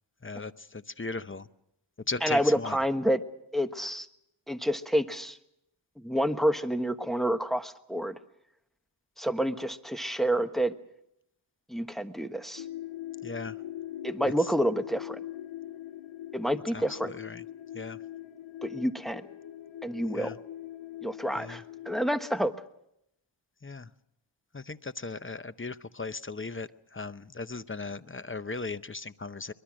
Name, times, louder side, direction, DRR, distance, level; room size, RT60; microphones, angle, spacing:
voice 1, 0.2-1.5 2.1-2.8 13.2-13.6 16.7-17.4 17.7-18.0 20.1-20.3 21.4-21.6 23.6-23.9 24.5-29.5, left 3 dB, 25° left, 13 dB, 0.8 m, -37 dB
voice 2, 2.2-3.2 3.5-4.1 4.5-5.4 6.0-8.2 9.2-10.7 11.7-12.6 14.0-15.2 16.3-17.1 18.6-19.3 19.8-20.3 21.0-22.5, equal, ahead, 7 dB, 1.3 m, -28 dB
sound 1, 12.6-22.1, left 12 dB, 75° left, 0.8 m, -42 dB
24.0 x 21.5 x 6.3 m, 0.80 s
wide cardioid pair, 65°, 48 cm